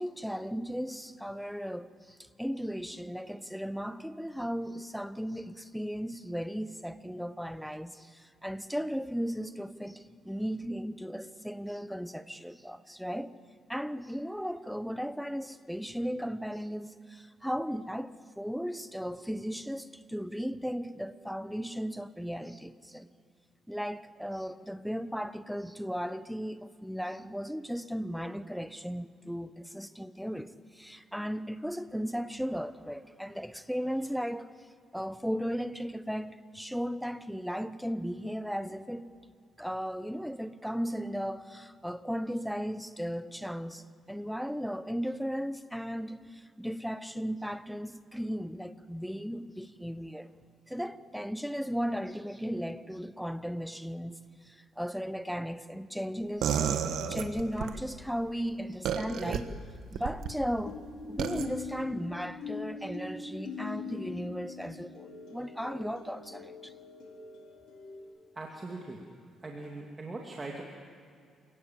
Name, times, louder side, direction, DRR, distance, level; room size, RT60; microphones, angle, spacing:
voice 1, 0.0-13.3 13.7-23.1 23.7-34.5 34.9-39.1 39.6-50.3 50.7-54.2 54.5-56.6 57.0-59.5 59.9-66.7, equal, ahead, 0.9 m, -36 dB
sound 1, 56.4-57.8 58.8-59.4 59.9-60.3 61.2-61.5, right 8 dB, 80° right, 1.5 m, -30 dB
Hapi drum, 56.8-57.7 60.2-68.0, left 5 dB, 90° left, 4.0 m, -43 dB
voice 2, 68.3-69.0 69.4-70.6, right 2 dB, 25° right, 2.7 m, -40 dB
28.5 x 18.0 x 7.5 m
cardioid pair, 90°, 0 cm